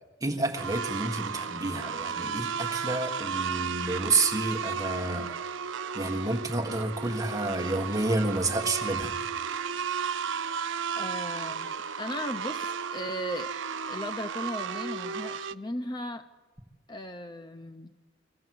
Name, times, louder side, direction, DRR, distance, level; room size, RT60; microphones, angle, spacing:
voice 1, 0.2-5.3 5.9-9.1, right 2 dB, 20° right, 3 dB, 1.4 m, -29 dB
sound 1, 0.5-15.5, right 6 dB, 75° right, 0.6 m, -34 dB
voice 2, 10.9-13.5 13.9-16.3 16.9-17.9, left 1 dB, 20° left, 9 dB, 0.5 m, -37 dB
23.5 x 14.5 x 7.7 m, 1.4 s
head